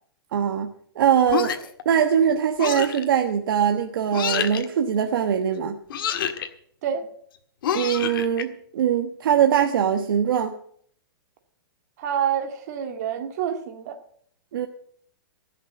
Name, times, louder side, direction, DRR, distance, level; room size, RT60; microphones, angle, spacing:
voice 1, 0.3-0.7 0.9-1.5 1.8-5.8 7.7-10.6 14.5-14.7, right 8 dB, 65° right, 5 dB, 1.2 m, -22 dB
sound 1, 1.3-1.8 2.6-3.0 4.1-4.7 5.9-6.5 7.6-8.4, left 8 dB, 65° left, 1.6 m, -27 dB
voice 2, 12.0-14.0, right 8 dB, 45° right, 6 dB, 2.0 m, -27 dB
16.5 x 6.7 x 8.7 m, 0.62 s
hypercardioid pair, 165°, 13 cm